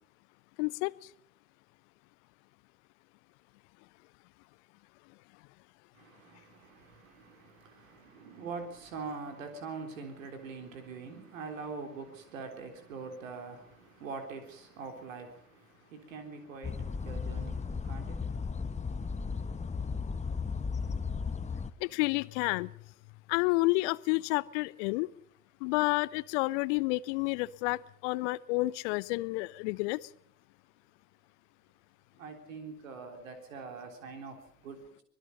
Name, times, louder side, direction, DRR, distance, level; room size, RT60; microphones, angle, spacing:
voice 1, 0.6-0.9 21.8-22.7 23.3-25.1 25.6-30.1, left 22 dB, 60° left, 0.8 m, -30 dB
voice 2, 5.9-18.6 19.3-19.4 32.2-35.0, right 4 dB, 70° right, 3.7 m, -44 dB
sound 1, 16.6-21.7, left 5 dB, 15° left, 1.2 m, -35 dB
25.0 x 20.5 x 5.4 m
figure-of-eight pair, 60°, 41 cm